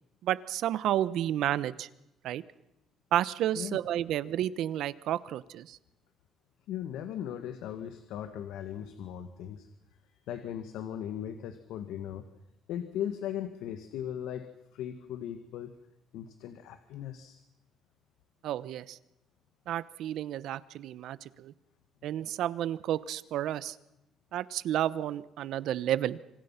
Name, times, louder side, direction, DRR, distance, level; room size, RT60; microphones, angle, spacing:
voice 1, 0.2-1.9 2.2-2.4 3.1-5.8 18.4-19.0 19.7-21.5 22.0-23.8 24.3-26.2, right 12 dB, 65° right, 17 dB, 0.9 m, -31 dB
voice 2, 6.7-9.7 10.3-12.2 12.7-15.7 16.1-17.4, left 10 dB, 85° left, 9 dB, 1.7 m, -38 dB
27.0 x 26.0 x 5.8 m, 0.85 s
cardioid pair, 155°, 0 cm